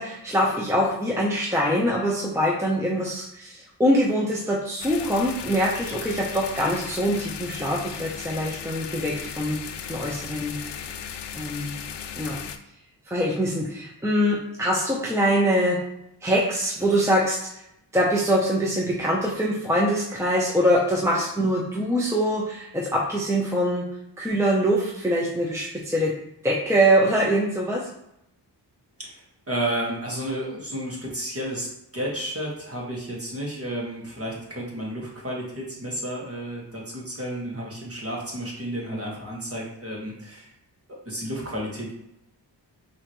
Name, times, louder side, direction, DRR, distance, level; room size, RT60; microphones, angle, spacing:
voice 1, 0.0-9.6 9.9-10.6 11.3-11.8 12.2-12.4 13.1-15.8 16.2-17.6 17.9-23.9 24.2-26.1 26.4-27.8, equal, 5° right, -3 dB, 0.8 m, -23 dB
sound 1, 4.8-12.6, left 8 dB, 75° left, 0.5 m, -36 dB
voice 2, 29.5-31.7 31.9-40.5 41.0-42.0, right 1 dB, 35° right, -3 dB, 1.7 m, -32 dB
5.6 x 2.9 x 3.1 m, 0.81 s
wide cardioid pair, 65°, 42 cm